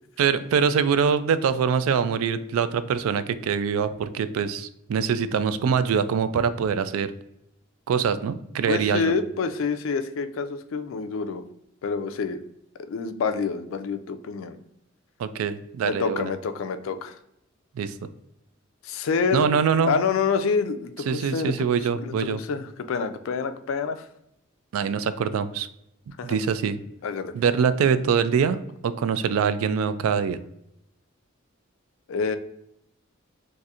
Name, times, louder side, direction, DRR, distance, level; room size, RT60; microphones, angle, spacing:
voice 1, 0.2-7.1 7.9-9.1 15.2-16.3 17.8-17.9 19.3-20.0 21.1-22.4 24.7-25.7 26.1-26.8 27.3-30.4, right 6 dB, 90° right, 13 dB, 0.3 m, -24 dB
voice 2, 8.7-11.4 11.8-12.4 12.9-14.6 15.9-17.2 18.8-19.5 19.9-21.5 21.9-24.0 26.2-26.4 27.0-27.3 32.1-32.4, left 5 dB, 75° left, 10 dB, 0.4 m, -27 dB
4.1 x 2.6 x 2.4 m, 0.79 s
head